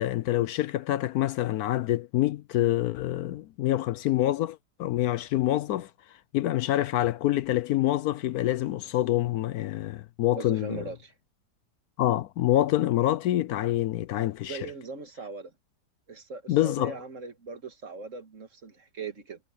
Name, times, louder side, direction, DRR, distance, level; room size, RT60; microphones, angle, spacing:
voice 1, 0.0-5.9 6.3-10.8 12.0-14.6 16.5-17.0, left 14 dB, 75° left, 1.0 m, -26 dB
voice 2, 10.3-11.1 14.4-15.5 16.1-19.4, right 4 dB, 50° right, 2.1 m, -40 dB
omnidirectional pair, 1.7 m